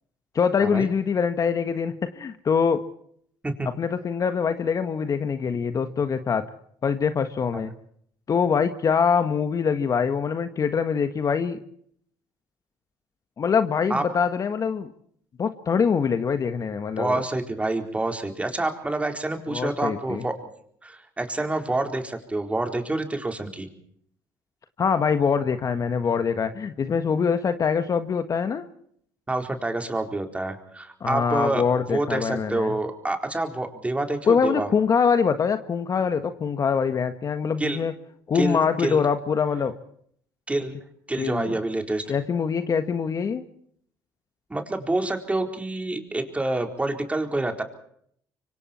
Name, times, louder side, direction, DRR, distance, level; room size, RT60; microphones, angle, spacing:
voice 1, 0.3-2.8 3.6-6.5 6.8-7.7 8.3-11.6 13.4-14.9 15.4-17.2 19.5-20.3 24.8-28.7 31.0-32.7 34.3-37.9 38.3-39.7 41.2-41.6 42.1-43.4, left 6 dB, 40° left, 9 dB, 1.5 m, -24 dB
voice 2, 17.0-20.3 20.8-23.7 29.3-31.6 31.9-34.7 37.6-37.8 38.3-39.0 40.5-40.7 41.1-42.0 44.5-47.6, right 2 dB, 15° right, 5 dB, 4.1 m, -27 dB
25.5 x 24.5 x 4.4 m, 0.65 s
supercardioid pair, 85°, 9 cm